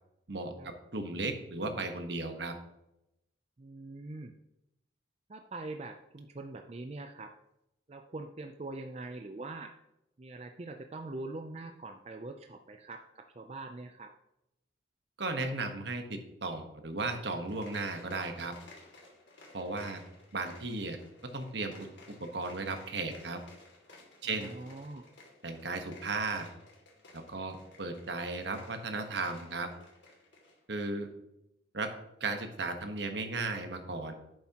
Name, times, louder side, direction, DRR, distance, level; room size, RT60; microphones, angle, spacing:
voice 1, 0.9-2.5 15.2-18.5 19.5-20.0 20.3-21.0 21.3-21.9 22.2-23.4 24.2-24.5 25.4-26.4 27.1-29.7 30.7-31.1 31.7-31.9 32.2-34.1, right 3 dB, 65° right, 6 dB, 1.2 m, -35 dB
voice 2, 3.6-4.3 5.3-7.3 7.9-9.7 10.2-14.1 24.2-25.0, right 2 dB, 35° right, 5 dB, 0.5 m, -43 dB
sound 1, 17.4-30.6, left 2 dB, 75° left, 2.5 m, -55 dB
11.0 x 8.6 x 2.9 m, 0.87 s
head